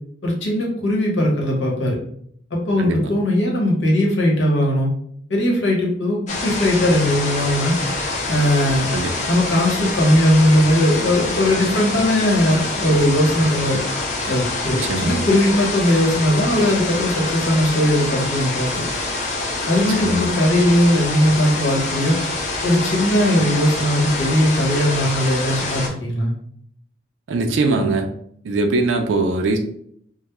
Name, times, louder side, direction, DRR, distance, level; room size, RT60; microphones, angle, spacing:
voice 1, 0.2-2.0 2.5-4.9 5.3-6.2 6.4-7.8 8.3-8.9 9.3-13.8 14.3-18.8 19.7-22.2 22.6-26.3, left 1 dB, 75° left, -2 dB, 0.9 m, -19 dB
voice 2, 2.8-3.1 8.9-9.1 14.9-15.2 20.0-20.3 27.3-28.1 28.4-29.6, right 3 dB, 75° right, 4 dB, 0.4 m, -21 dB
sound 1, 6.3-25.9, left 2 dB, 40° left, 0.5 m, -26 dB
2.2 x 2.0 x 2.9 m, 0.66 s
head